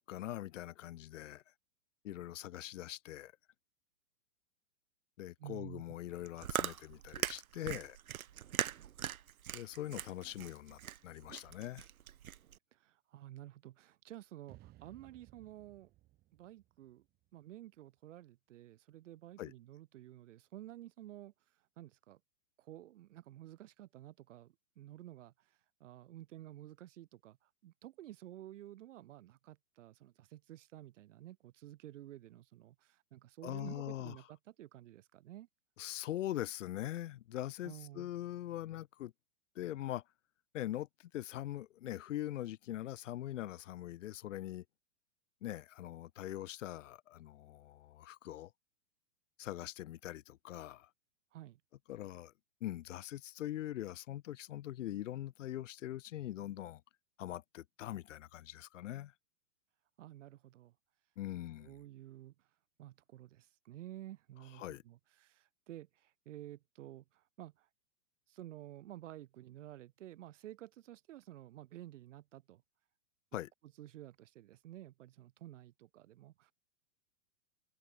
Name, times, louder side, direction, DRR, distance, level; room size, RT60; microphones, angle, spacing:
voice 1, 0.0-1.4 2.0-3.3 5.2-8.0 9.5-11.9 19.4-19.5 33.4-34.2 35.8-39.1 39.5-40.0 40.5-44.6 45.4-48.5 49.4-50.9 51.9-52.3 52.6-56.8 57.2-59.1 61.2-61.7 64.5-64.8 73.3-73.5, left 13 dB, 60° left, 1.6 m, -42 dB
voice 2, 5.4-5.8 12.7-15.9 16.3-17.0 17.3-21.3 21.8-22.2 22.6-35.5 37.6-38.1 51.3-51.6 60.0-60.7 61.6-62.3 62.8-67.7 68.3-72.6 73.8-76.5, right 14 dB, 60° right, 1.0 m, -52 dB
Chewing mastication, 6.1-12.6, right 10 dB, 90° right, 1.3 m, -40 dB
sound 1, 14.5-17.7, right 16 dB, 20° right, 1.4 m, -61 dB
hypercardioid pair, 150°, 41 cm